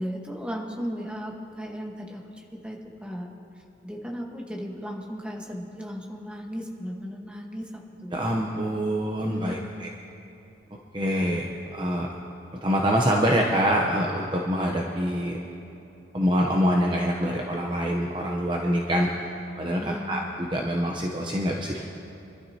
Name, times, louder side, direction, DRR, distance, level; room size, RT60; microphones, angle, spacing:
voice 1, 0.0-3.3 3.8-8.1 9.3-9.7 19.8-20.2, equal, 5° right, -1 dB, 1.3 m, -36 dB
voice 2, 8.1-9.9 10.9-12.1 12.6-15.4 16.1-19.1 19.6-21.9, equal, 25° right, -1 dB, 0.8 m, -25 dB
25.5 x 12.5 x 2.9 m, 2.9 s
head